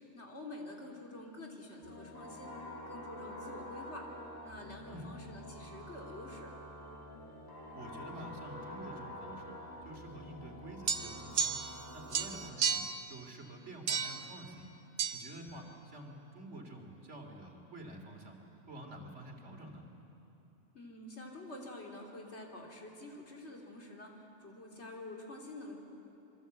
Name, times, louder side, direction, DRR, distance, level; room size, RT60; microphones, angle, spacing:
voice 1, 0.1-2.5 2.9-4.1 4.4-6.5 20.7-25.8, left 1 dB, 70° left, 0 dB, 3.3 m, -48 dB
sound 1, 1.8-12.5, left 1 dB, 20° left, 2.6 m, -47 dB
voice 2, 7.7-9.5 9.8-11.6 11.9-12.8 13.1-14.7 15.1-18.4 18.7-19.8, right 1 dB, 80° right, 2 dB, 3.2 m, -48 dB
sound 2, 10.9-11.8 12.1-13.0 13.9-14.3 15.0-15.2, right 6 dB, 60° right, 1.2 m, -33 dB
27.5 x 23.0 x 8.2 m, 2.9 s
omnidirectional pair, 1.2 m